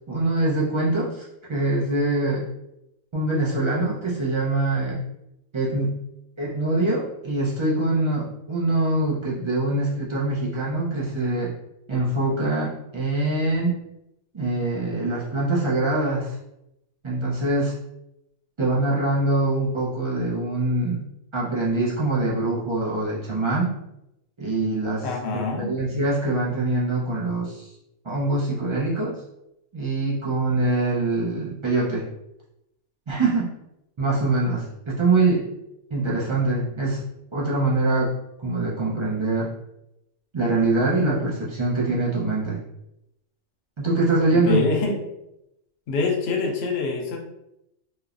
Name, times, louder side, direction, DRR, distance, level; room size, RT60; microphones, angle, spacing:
voice 1, 0.1-1.2 1.5-2.4 3.1-5.0 5.5-5.9 6.4-11.5 11.9-13.8 14.3-16.4 17.0-17.8 18.6-21.0 21.3-23.8 24.4-25.1 25.6-27.7 28.0-29.2 29.7-32.1 33.1-33.5 34.0-35.5 35.9-37.0 37.3-38.1 38.4-39.5 40.3-42.6 43.8-44.7, right 2 dB, 50° right, -6 dB, 0.3 m, -24 dB
voice 2, 25.0-25.7 44.3-45.0 45.9-47.2, left 3 dB, 65° left, 0 dB, 0.8 m, -25 dB
3.0 x 2.0 x 2.4 m, 0.85 s
omnidirectional pair, 1.3 m